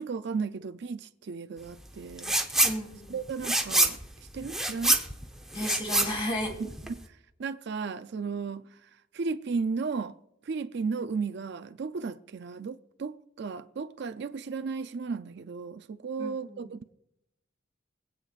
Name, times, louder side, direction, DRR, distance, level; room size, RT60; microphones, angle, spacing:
voice 1, 0.0-2.4 3.1-4.0 4.3-5.0 6.6-6.7 7.0-7.1 7.4-8.7 9.1-10.2 10.4-16.9, right 5 dB, 55° right, 0.4 m, -34 dB
sound 1, 2.2-2.8 3.1-7.0, right 2 dB, ahead, 0.8 m, -26 dB
voice 2, 2.6-3.2 5.5-6.6 16.2-16.7, left 1 dB, 25° left, 2.7 m, -33 dB
24.5 x 8.7 x 2.4 m
head